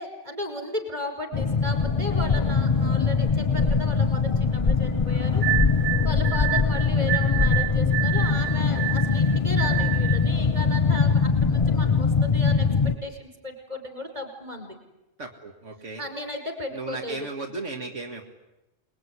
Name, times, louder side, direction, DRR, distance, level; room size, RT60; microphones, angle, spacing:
voice 1, 0.0-5.4 6.0-14.8 16.0-17.3, left 1 dB, 35° right, 4 dB, 5.5 m, -35 dB
sound 1, 1.3-13.0, left 5 dB, 30° left, 1.0 m, -22 dB
sound 2, 5.4-10.3, right 17 dB, 50° right, 1.6 m, -29 dB
voice 2, 15.2-16.0 16.7-18.2, right 3 dB, 75° right, 2 dB, 2.3 m, -35 dB
28.0 x 21.0 x 9.7 m, 1.0 s
omnidirectional pair, 1.3 m